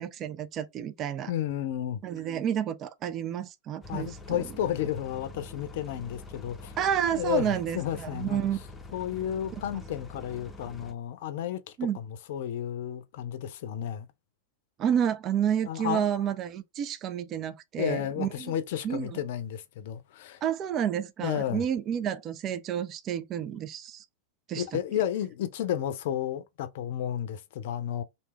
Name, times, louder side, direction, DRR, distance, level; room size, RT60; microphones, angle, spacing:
voice 1, 0.0-1.3 2.0-4.4 6.8-8.6 11.8-12.0 14.8-18.5 18.8-19.1 20.4-24.0 24.5-24.6, right 9 dB, 30° right, 0.4 m, -30 dB
voice 2, 1.3-2.0 3.9-6.7 7.1-8.5 8.9-14.1 15.7-16.3 17.8-20.4 21.2-21.6 24.6-28.0, left 10 dB, 50° left, 0.5 m, -32 dB
sound 1, 3.8-10.9, left 2 dB, 10° left, 0.7 m, -45 dB
3.3 x 2.8 x 3.0 m
figure-of-eight pair, 90°, 0 cm